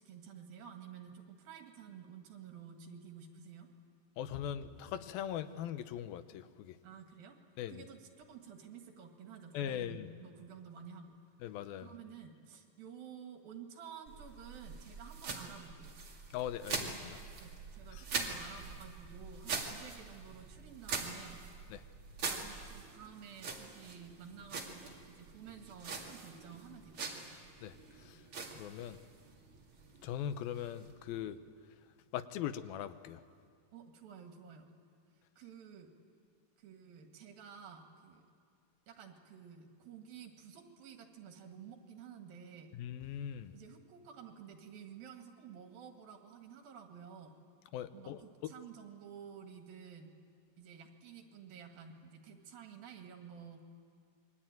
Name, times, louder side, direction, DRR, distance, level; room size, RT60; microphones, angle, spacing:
voice 1, 0.0-3.7 6.8-7.4 7.7-11.2 11.8-16.0 17.4-21.4 22.3-27.4 28.8-28.9 33.7-34.7 35.4-35.9 36.6-38.3 38.9-42.7 43.5-47.3 47.9-50.1 50.6-53.7, right 7 dB, 80° right, 4 dB, 3.9 m, -52 dB
voice 2, 4.2-6.8 7.6-7.8 9.5-10.1 11.4-11.9 16.3-17.2 17.9-18.1 21.7-21.8 27.6-28.2 28.6-29.0 30.0-31.4 32.1-33.2 42.7-43.5 47.7-48.5, left 10 dB, 85° left, 11 dB, 2.8 m, -40 dB
sound 1, 14.1-31.3, right 4 dB, 40° right, 3.0 m, -44 dB
28.0 x 22.5 x 9.1 m, 2.1 s
omnidirectional pair, 4.1 m